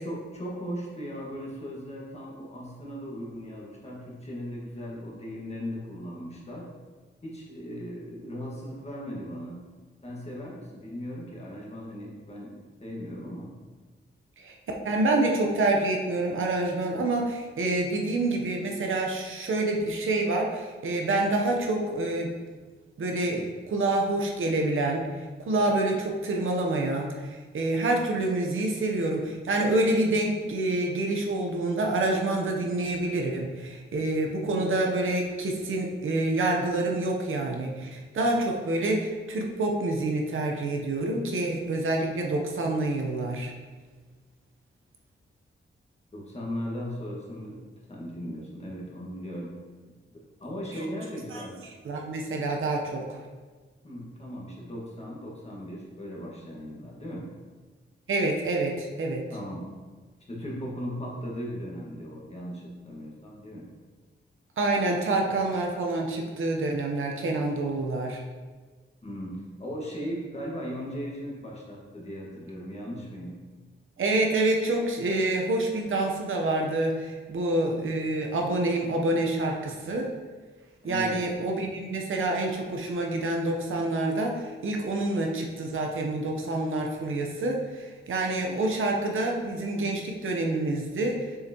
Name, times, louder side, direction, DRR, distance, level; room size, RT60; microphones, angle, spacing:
voice 1, 0.0-6.7 7.2-9.6 10.0-13.5 46.1-47.6 47.9-49.5 49.9-51.5 53.8-57.2 59.3-59.7 60.3-63.7 69.0-73.3 80.8-81.2, equal, 30° left, -4 dB, 1.7 m, -37 dB
voice 2, 14.8-22.3 23.0-43.5 51.3-51.4 51.8-53.2 58.1-59.2 64.6-68.2 74.0-80.1 80.8-91.4, right 2 dB, 85° right, 1 dB, 1.0 m, -27 dB
6.8 x 5.6 x 3.0 m, 1.4 s
wide cardioid pair, 100°, 20 cm